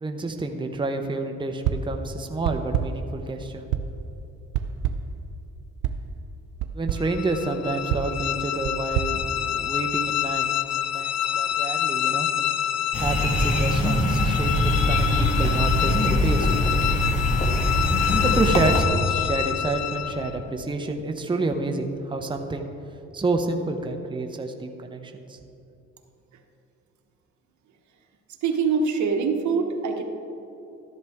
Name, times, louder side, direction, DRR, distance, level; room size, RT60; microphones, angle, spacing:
voice 1, 0.0-3.6 6.7-9.2 9.5-10.5 10.8-12.3 13.0-16.5 18.2-22.7 23.1-25.4, right 2 dB, 15° right, 4 dB, 0.8 m, -29 dB
sound 1, 1.6-2.0 2.4-3.1 3.7-4.1 4.5-5.2 5.8-6.1 6.6-7.1 7.9-10.0, right 9 dB, 90° right, 0.6 m, -29 dB
sound 2, 7.0-20.4, left 11 dB, 60° left, 0.5 m, -27 dB
sound 3, 12.9-18.8, left 1 dB, 25° left, 1.7 m, -23 dB
voice 2, 28.4-30.0, right 5 dB, 70° right, 4 dB, 1.1 m, -24 dB
13.0 x 10.5 x 3.5 m, 2.9 s
cardioid pair, 90°, 30 cm